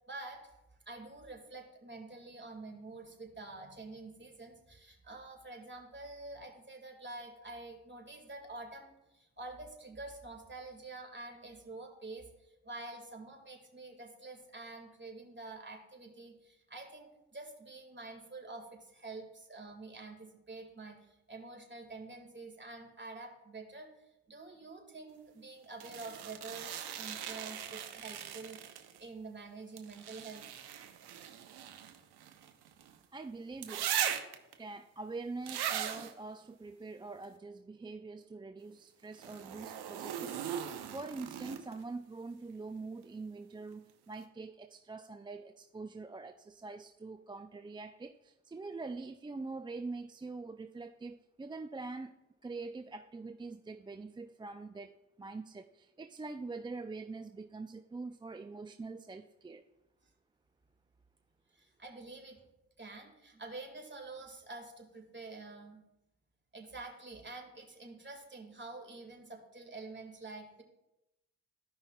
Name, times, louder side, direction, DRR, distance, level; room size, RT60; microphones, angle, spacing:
voice 1, 0.1-0.5 0.9-30.4 60.0-60.1 61.5-62.4 62.8-65.8 66.5-70.6, right 3 dB, 30° right, 2 dB, 2.0 m, -48 dB
sound 1, 25.8-29.0 29.8-32.9 33.6-34.5 35.5-36.1 39.1-41.8 43.7-43.8, right 9 dB, 85° right, 0.7 m, -39 dB
voice 2, 33.1-33.9 34.6-52.1 52.4-59.6, right 3 dB, 15° right, 8 dB, 0.3 m, -44 dB
14.5 x 5.5 x 2.3 m, 0.94 s
supercardioid pair, 40°, 38 cm